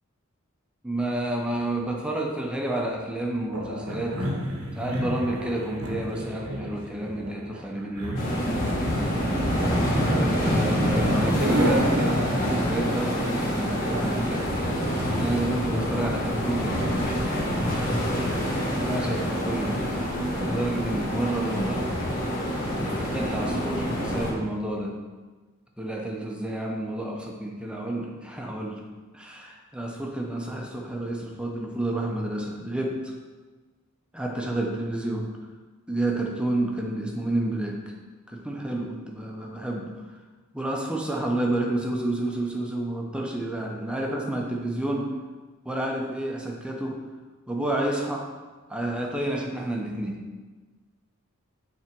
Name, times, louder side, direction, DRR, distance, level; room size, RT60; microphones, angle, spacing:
voice 1, 0.8-4.3 4.7-8.3 10.0-14.5 15.0-19.9 20.4-21.9 22.6-25.0 25.8-28.8 29.1-33.1 34.1-35.3 35.9-37.9 38.3-40.2 40.5-45.1 45.6-47.0 47.5-48.3 48.7-50.2, right 1 dB, 5° right, 0 dB, 0.7 m, -30 dB
sound 1, 3.5-16.2, right 1 dB, 90° right, 1.2 m, -33 dB
sound 2, 8.2-24.3, equal, 40° left, 1.6 m, -26 dB
8.7 x 3.5 x 4.5 m, 1.3 s
head